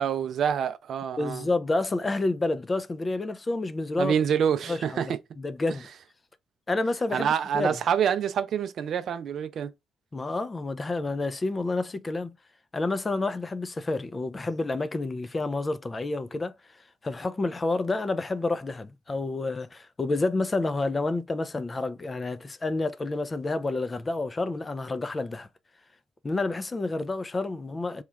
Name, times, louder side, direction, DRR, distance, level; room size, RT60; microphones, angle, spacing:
voice 1, 0.0-1.5 4.0-5.2 7.1-9.7, right 8 dB, 65° right, 0.4 m, -26 dB
voice 2, 1.2-4.1 4.7-4.8 5.0-5.9 6.7-7.3 7.5-7.8 10.1-12.4 12.7-16.5 17.0-25.5 26.2-28.0, left 2 dB, 25° left, 0.4 m, -29 dB
3.0 x 2.3 x 3.3 m
cardioid pair, 90°, 0 cm